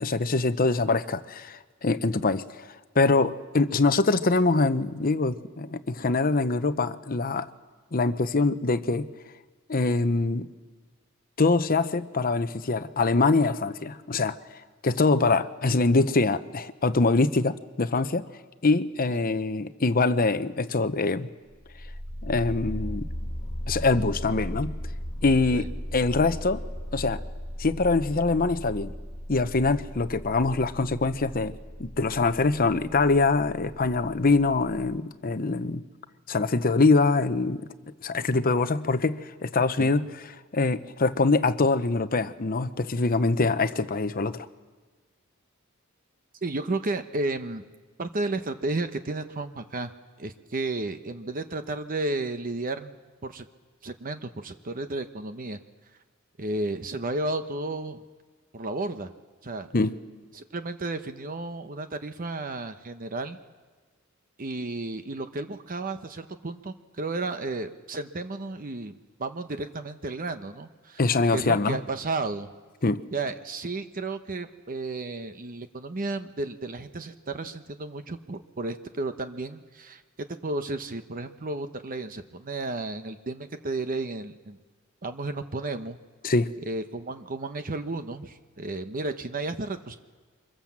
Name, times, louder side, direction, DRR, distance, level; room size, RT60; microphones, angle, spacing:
voice 1, 0.0-7.5 7.9-9.1 9.7-10.5 11.4-14.4 14.8-18.3 18.6-21.3 22.2-23.1 23.7-24.8 25.2-25.7 25.9-26.6 26.9-27.2 27.6-28.9 29.3-35.8 36.3-37.7 38.0-40.1 40.5-44.5 59.7-60.0 71.0-71.8 72.8-73.0 86.2-86.5, left 3 dB, 45° left, 12 dB, 0.8 m, -24 dB
sound 1, 21.5-35.0, equal, 30° left, 2.0 m, -37 dB
voice 2, 46.4-47.6 48.0-49.9 50.2-52.9 53.2-53.5 53.8-55.6 56.4-58.0 58.5-59.1 59.4-59.7 60.3-63.4 64.4-71.0 71.3-72.5 73.1-80.0 80.4-84.6 85.0-86.0 86.7-90.0, right 2 dB, 40° right, 9 dB, 0.9 m, -33 dB
25.0 x 22.5 x 7.4 m, 1.3 s
head